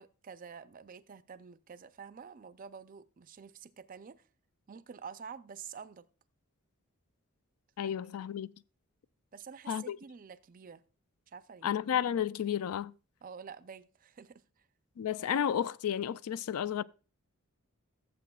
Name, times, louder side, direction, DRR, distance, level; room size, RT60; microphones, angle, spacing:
voice 1, 0.0-4.3 4.7-6.1 7.8-8.1 9.3-10.8 11.3-11.7 13.2-14.7, right 6 dB, 40° right, 0.4 m, -48 dB
voice 2, 7.8-8.5 9.7-10.0 11.6-12.9 15.0-16.8, left 9 dB, 85° left, 0.4 m, -32 dB
15.5 x 7.4 x 2.3 m
head